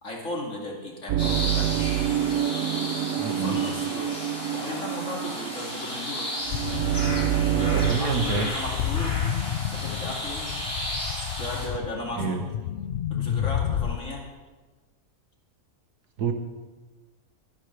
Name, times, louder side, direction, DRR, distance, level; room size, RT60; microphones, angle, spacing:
voice 1, 0.0-1.7 3.2-4.1 4.5-6.3 7.6-9.2 9.7-10.5 11.4-12.4 13.1-14.2, left 1 dB, 55° left, -1 dB, 2.6 m, -35 dB
sound 1, 1.1-7.9, right 12 dB, 70° right, 0.9 m, -27 dB
sound 2, 1.2-11.7, left 1 dB, 20° left, 4.6 m, -34 dB
voice 2, 3.2-3.5 7.7-8.5 12.2-12.4 16.2-16.3, right 5 dB, 90° right, 5 dB, 1.8 m, -27 dB
sound 3, 6.5-14.0, left 10 dB, 80° left, 0.5 m, -31 dB
22.5 x 10.0 x 3.3 m, 1.3 s
omnidirectional pair, 1.6 m